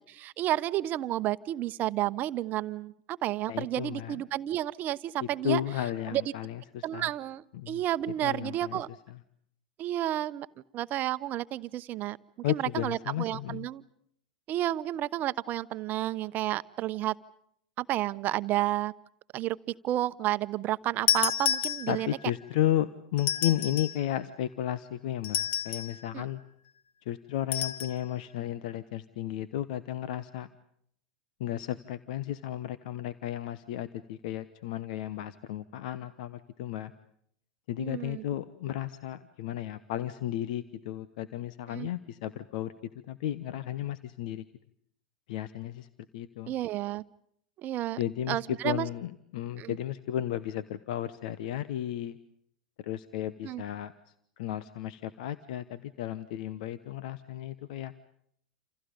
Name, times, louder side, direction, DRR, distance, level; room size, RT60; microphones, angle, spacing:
voice 1, 0.0-5.6 6.1-6.2 6.8-8.9 9.8-10.5 10.7-12.2 12.5-13.8 14.5-17.1 17.8-18.9 19.3-19.6 19.8-22.1 26.1-26.2 37.8-38.2 41.7-41.9 46.5-47.0 47.6-48.0 48.3-48.9 49.6-49.7 53.4-53.6, right 14 dB, 40° right, 15 dB, 1.0 m, -31 dB
voice 2, 3.5-4.2 5.4-7.1 7.5-7.8 8.2-8.8 9.1-9.2 12.4-13.7 21.9-26.4 27.1-30.5 31.4-36.9 37.7-42.7 43.1-44.4 45.3-45.9 46.1-46.5 48.0-52.2 52.8-53.9 54.4-57.9, left 12 dB, 60° left, 15 dB, 1.1 m, -33 dB
sound 1, 21.1-22.2 23.2-24.0 25.2-26.0 27.5-28.0, left 9 dB, 45° left, 1.8 m, -30 dB
28.5 x 28.5 x 5.2 m, 0.69 s
hypercardioid pair, 95°, 5 cm